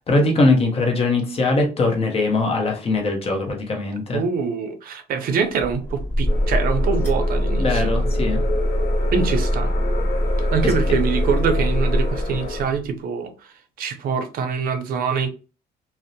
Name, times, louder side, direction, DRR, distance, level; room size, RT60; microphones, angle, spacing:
voice 1, 0.1-4.2 7.6-8.4 10.6-10.7, left 2 dB, 35° left, 0.8 m, -21 dB
voice 2, 4.1-7.9 9.1-9.7 10.4-13.3 13.8-15.3, right 6 dB, 60° right, 0.5 m, -24 dB
sound 1, 5.5-12.9, equal, 15° left, 1.3 m, -22 dB
sound 2, 6.3-12.6, left 3 dB, 65° left, 0.7 m, -31 dB
2.6 x 2.0 x 2.6 m
cardioid pair, 110°, 17 cm